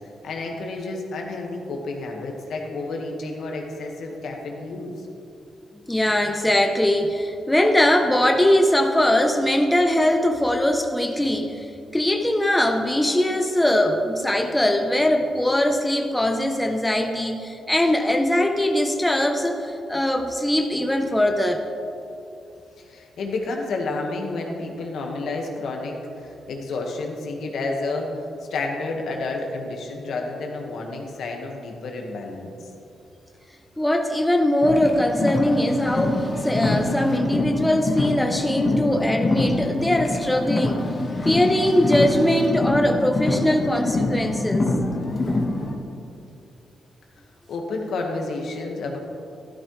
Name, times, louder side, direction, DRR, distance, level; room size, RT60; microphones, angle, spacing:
voice 1, 0.2-5.1 22.8-28.1 28.5-32.7 47.5-49.0, left 3 dB, 75° left, 1 dB, 1.6 m, -30 dB
voice 2, 5.7-11.7 11.9-21.6 33.8-40.8 41.2-44.7, left 1 dB, 10° left, 3 dB, 0.8 m, -21 dB
Car, 34.6-45.7, left 2 dB, 35° left, 1.5 m, -25 dB
12.5 x 12.0 x 3.3 m, 2.6 s
cardioid pair, 90°, 0 cm